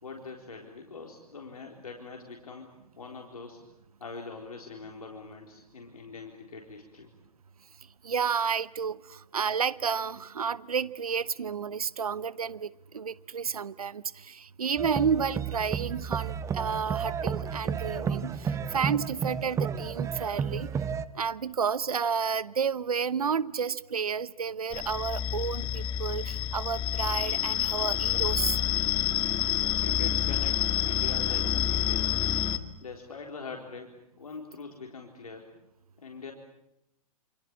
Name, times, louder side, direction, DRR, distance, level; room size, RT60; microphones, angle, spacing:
voice 1, 0.0-2.7 3.0-3.6 4.0-7.1 29.8-32.3 32.8-35.5 36.0-36.3, left 4 dB, 70° left, 1 dB, 4.1 m, -43 dB
voice 2, 8.0-20.7 21.1-28.6, right 6 dB, 70° right, 19 dB, 1.0 m, -31 dB
sound 1, 14.8-21.1, right 7 dB, 15° right, 1.1 m, -32 dB
sound 2, 24.7-32.6, left 11 dB, 25° left, 1.7 m, -28 dB
28.0 x 27.0 x 7.4 m, 0.84 s
figure-of-eight pair, 105°, 19 cm